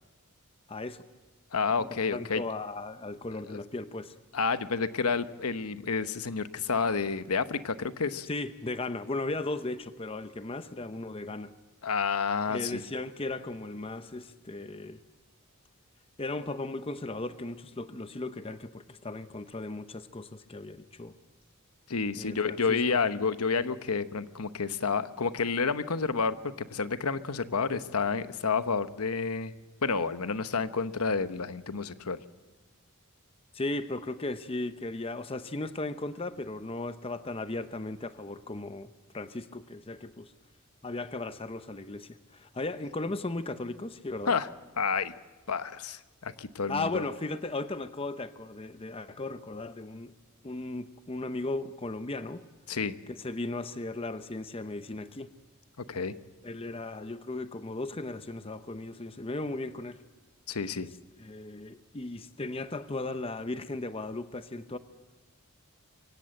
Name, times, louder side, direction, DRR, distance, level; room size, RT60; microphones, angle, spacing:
voice 1, 0.7-1.0 1.8-4.1 8.3-11.5 12.5-15.0 16.2-21.1 22.2-22.8 33.5-40.3 40.8-44.4 46.7-50.1 50.4-52.4 53.2-55.3 56.4-60.0 60.8-60.9 61.2-64.8, left 2 dB, 25° left, 11 dB, 0.7 m, -36 dB
voice 2, 1.5-2.4 3.5-3.6 4.3-8.3 11.8-12.8 21.9-29.5 29.8-32.2 44.3-44.5 44.8-45.1 45.5-47.0 52.7-52.9 55.9-56.1 60.5-60.9, left 5 dB, 90° left, 12 dB, 1.0 m, -30 dB
24.0 x 17.0 x 7.7 m, 1.2 s
head